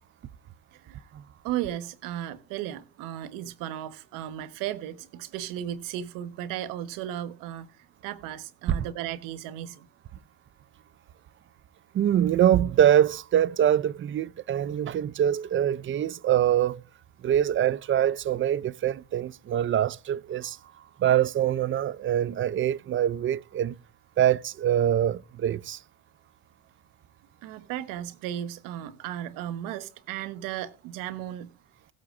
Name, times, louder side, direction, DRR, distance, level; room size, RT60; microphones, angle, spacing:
voice 1, 0.7-1.1 1.4-9.9 27.4-31.5, right 11 dB, 80° right, 1.2 m, -35 dB
voice 2, 11.9-16.8 17.2-20.6 21.0-23.7 24.2-25.8, right 10 dB, 40° right, 0.5 m, -24 dB
16.5 x 8.5 x 2.5 m
supercardioid pair, 75°, 32 cm